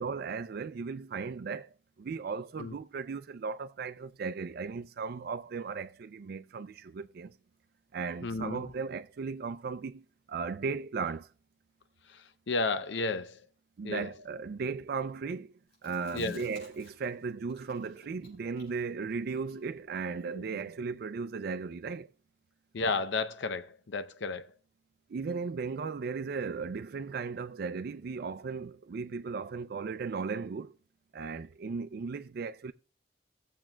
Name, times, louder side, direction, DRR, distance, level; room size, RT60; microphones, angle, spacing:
voice 1, 0.0-1.7 2.0-7.3 7.9-11.3 13.8-15.5 15.8-22.1 25.1-30.7 31.1-32.7, right 5 dB, 55° right, 0.4 m, -36 dB
voice 2, 8.2-8.7 12.1-13.4 13.8-14.1 16.1-16.4 22.7-24.5, left 3 dB, 75° left, 0.6 m, -33 dB
Chewing mastication, 15.7-17.2 17.5-20.9, equal, 55° left, 4.5 m, -54 dB
18.5 x 7.3 x 2.2 m
head